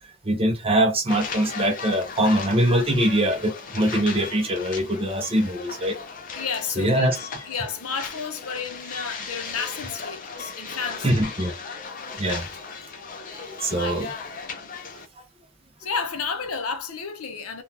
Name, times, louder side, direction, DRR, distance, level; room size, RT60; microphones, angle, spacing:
voice 1, 0.2-6.0 6.8-7.1 11.0-11.5 12.2-12.5 13.6-14.1, right 1 dB, 25° right, 0.6 m, -22 dB
sound 1, 1.1-15.1, left 5 dB, 35° left, 0.6 m, -37 dB
voice 2, 6.3-11.2 12.2-12.4 13.7-14.0 14.5-14.7 15.8-17.6, left 5 dB, 75° left, 0.7 m, -32 dB
3.7 x 2.3 x 2.7 m
head